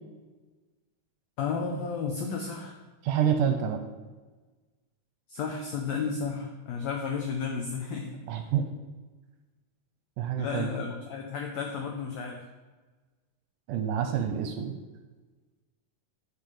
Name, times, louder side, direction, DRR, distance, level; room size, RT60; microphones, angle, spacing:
voice 1, 1.4-2.8 5.3-8.2 10.4-12.4, left 5 dB, 85° left, 2 dB, 1.5 m, -33 dB
voice 2, 3.0-3.8 8.3-8.7 10.2-10.7 13.7-14.8, right 8 dB, 80° right, 6 dB, 2.0 m, -27 dB
6.5 x 5.5 x 6.5 m, 1.3 s
omnidirectional pair, 4.0 m